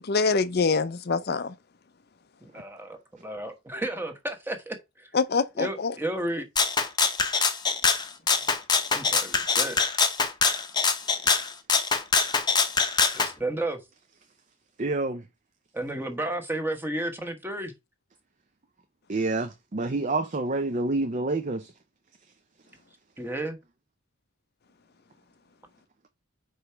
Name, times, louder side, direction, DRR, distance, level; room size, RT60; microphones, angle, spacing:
voice 1, 0.1-1.5 5.1-5.9, left 4 dB, 45° left, 0.5 m, -25 dB
voice 2, 2.4-5.1 5.6-6.5 8.9-9.8 13.1-13.8 15.7-17.7 23.2-23.6, right 1 dB, 10° right, 1.1 m, -32 dB
Rattle (instrument), 6.6-13.3, left 5 dB, 20° left, 0.8 m, -24 dB
voice 3, 14.8-15.2 19.1-21.7, right 2 dB, 35° right, 0.6 m, -28 dB
5.0 x 4.8 x 5.6 m
head